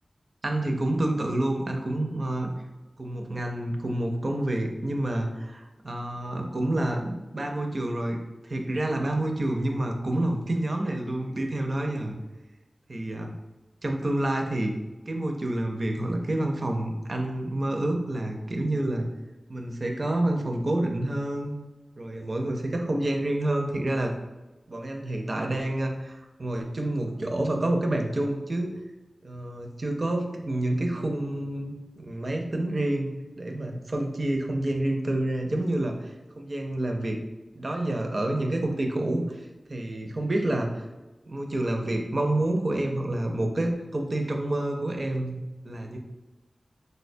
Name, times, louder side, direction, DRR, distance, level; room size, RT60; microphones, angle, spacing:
voice 1, 0.4-2.5 3.0-8.2 8.4-12.2 12.9-13.3 13.8-14.7 15.1-19.1 19.5-21.6 22.0-24.1 24.7-28.7 29.2-33.1 33.4-37.2 37.5-40.9 41.2-45.4 45.6-46.0, right 1 dB, 45° right, 3 dB, 0.4 m, -28 dB
3.9 x 2.1 x 2.5 m, 1.1 s
wide cardioid pair, 95°, 0 cm